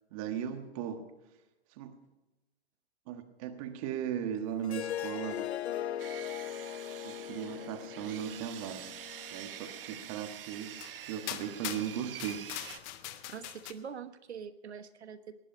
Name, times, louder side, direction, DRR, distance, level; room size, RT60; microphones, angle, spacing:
voice 1, 0.1-1.1 1.7-2.0 3.1-5.4 7.0-9.0 9.3-10.7 11.1-12.5, right 9 dB, 30° right, 1.4 m, -37 dB
Harp, 4.6-9.8, left 11 dB, 80° left, 0.9 m, -39 dB
Sawing, 6.0-12.8, right 10 dB, 60° right, 1.0 m, -46 dB
sound 1, 10.1-10.2 10.8-11.0 11.3-13.7, left 13 dB, 15° left, 0.5 m, -42 dB
voice 2, 13.3-15.4, right 7 dB, 85° right, 1.3 m, -44 dB
19.0 x 11.0 x 5.1 m
hypercardioid pair, 145°, 32 cm